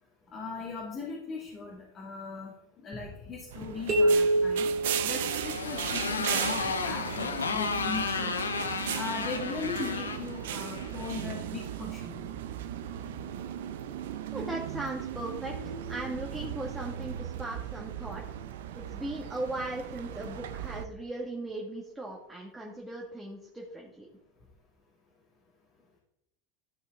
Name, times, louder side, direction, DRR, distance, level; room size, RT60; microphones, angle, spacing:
voice 1, 0.3-2.5 2.8-4.6 5.0-8.4 8.9-12.3, left 4 dB, 40° left, -3 dB, 2.5 m, -39 dB
sound 1, 3.5-20.9, right 10 dB, 70° right, 0.6 m, -37 dB
sound 2, 3.9-5.8, right 1 dB, 40° right, 2.6 m, -26 dB
Motorcycle, 4.8-11.3, left 4 dB, 85° left, 0.9 m, -33 dB
voice 2, 14.3-18.2 18.8-24.1, right 2 dB, 10° right, -2 dB, 1.8 m, -38 dB
13.0 x 5.7 x 3.7 m, 0.81 s
hypercardioid pair, 80°, 0 cm